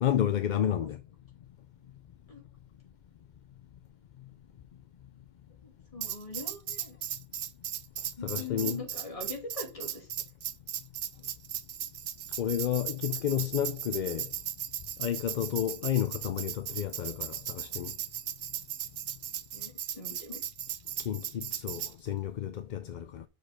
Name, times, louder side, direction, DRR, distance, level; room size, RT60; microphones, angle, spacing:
voice 1, 0.0-1.0 8.2-8.8 12.4-14.3 15.0-17.9 21.0-23.2, left 10 dB, 55° left, 0.6 m, -31 dB
voice 2, 5.6-7.0 8.2-10.1 11.2-11.3 19.5-20.4, left 3 dB, 35° left, 2.8 m, -42 dB
Tambourine, 6.0-21.9, right 10 dB, 75° right, 0.8 m, -37 dB
6.5 x 5.0 x 6.2 m
omnidirectional pair, 1.0 m